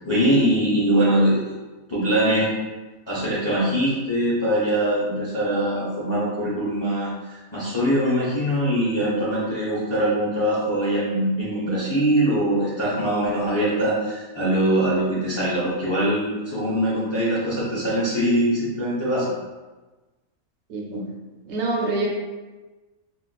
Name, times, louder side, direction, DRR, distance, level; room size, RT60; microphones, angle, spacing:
voice 1, 0.0-1.4 1.9-2.5 3.1-19.3, right 1 dB, 50° left, -8 dB, 0.3 m, -22 dB
voice 2, 20.7-21.1 21.5-22.1, right 2 dB, 60° right, -2 dB, 0.9 m, -26 dB
3.7 x 2.4 x 2.2 m, 1.2 s
omnidirectional pair, 1.4 m